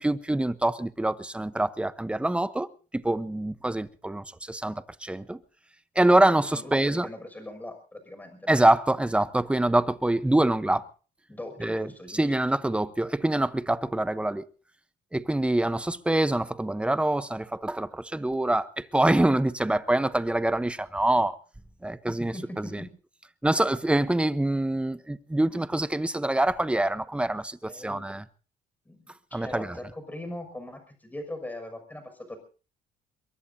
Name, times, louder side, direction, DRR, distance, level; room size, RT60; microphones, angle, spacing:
voice 1, 0.0-5.4 6.0-7.1 8.5-10.8 11.6-14.4 15.1-21.4 21.8-22.8 23.4-28.2 29.3-29.8, right 1 dB, 5° right, 0.9 m, -25 dB
voice 2, 6.5-8.6 11.3-12.2 22.1-22.9 27.7-28.1 28.8-32.4, left 1 dB, 10° left, 6.2 m, -40 dB
22.5 x 22.5 x 2.7 m
cardioid pair, 110°, 17 cm